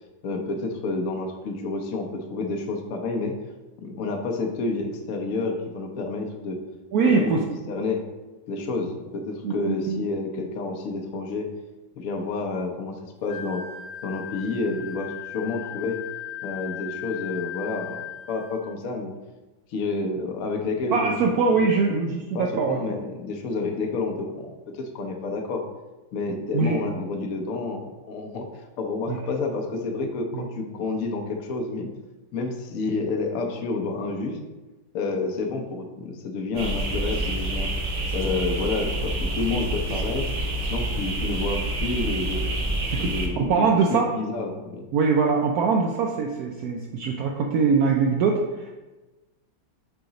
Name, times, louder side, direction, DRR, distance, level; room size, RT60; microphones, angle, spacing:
voice 1, 0.2-3.4 3.8-6.6 7.0-8.0 8.5-11.5 11.9-13.7 14.0-16.0 16.4-19.1 19.7-21.7 22.3-25.6 26.1-28.5 28.8-31.9 32.3-34.4 34.9-37.7 38.1-40.3 40.7-42.4 43.0-44.9, left 3 dB, 60° left, 3 dB, 0.9 m, -29 dB
voice 2, 6.9-7.4 9.4-10.0 20.9-22.8 26.5-26.8 29.1-29.2 30.3-30.4 42.9-44.1 44.9-48.8, right 5 dB, 75° right, 1 dB, 0.8 m, -23 dB
Wind instrument woodwind instrument, 13.3-18.7, left 10 dB, 80° left, 1.3 m, -37 dB
sound 1, 36.5-43.3, right 1 dB, 50° right, 1.2 m, -27 dB
5.0 x 4.8 x 3.9 m, 1.1 s
omnidirectional pair, 2.1 m